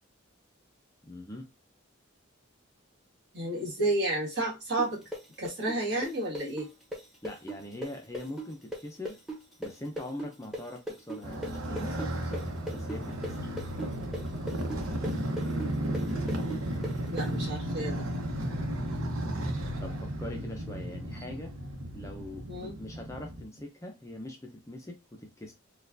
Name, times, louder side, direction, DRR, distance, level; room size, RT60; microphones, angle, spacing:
voice 1, 1.0-1.5 7.2-9.2 9.6-13.5 19.8-21.5 21.9-25.5, left 1 dB, 15° left, 0.4 m, -42 dB
voice 2, 3.3-5.0 5.4-6.7 17.1-18.0 22.5-22.8, right 1 dB, 55° right, 1.7 m, -31 dB
sound 1, 4.8-12.4 12.7-17.3, right 1 dB, ahead, 0.8 m, -38 dB
Motorcycle, 11.2-23.4, right 1 dB, 80° right, 0.8 m, -34 dB
4.4 x 2.3 x 2.5 m
head